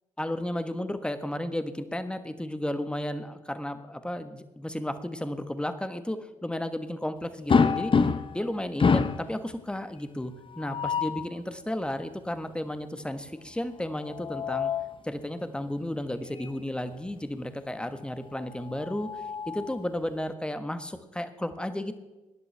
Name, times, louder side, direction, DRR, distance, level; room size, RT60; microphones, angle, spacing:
voice 1, 0.2-7.9 8.3-14.7 15.0-21.9, left 1 dB, 5° left, 9 dB, 1.3 m, -33 dB
sound 1, 7.5-8.4 8.8-9.3 10.5-11.3 13.9-15.0 16.4-16.6 16.9-17.0 18.6-19.8, left 5 dB, 30° left, 0.8 m, -26 dB
18.0 x 11.0 x 3.4 m, 1.1 s
figure-of-eight pair, 45°, 17 cm